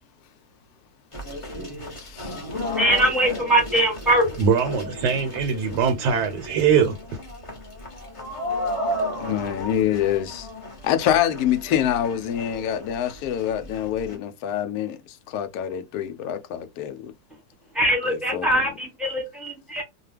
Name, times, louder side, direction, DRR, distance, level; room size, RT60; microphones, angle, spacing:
sound 1, 1.1-14.2, left 1 dB, 25° left, 0.7 m, -34 dB
voice 1, 2.0-2.4 9.2-10.5 10.8-17.1 18.1-18.5, left 10 dB, 70° left, 0.9 m, -26 dB
voice 2, 2.7-4.4 17.7-19.8, right 1 dB, ahead, 0.9 m, -22 dB
voice 3, 4.4-7.0, right 6 dB, 75° right, 1.2 m, -21 dB
2.9 x 2.2 x 3.3 m
omnidirectional pair, 2.0 m